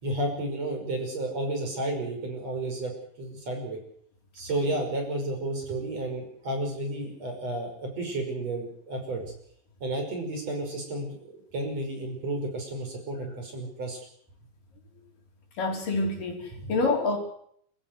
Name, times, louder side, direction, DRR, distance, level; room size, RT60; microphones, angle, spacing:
voice 1, 0.0-3.8 4.3-9.3 9.8-14.0 16.6-16.7, right 1 dB, 45° right, 3 dB, 6.7 m, -32 dB
voice 2, 15.6-17.2, left 3 dB, 70° left, 2 dB, 5.6 m, -27 dB
27.0 x 15.5 x 8.0 m, 0.67 s
omnidirectional pair, 4.0 m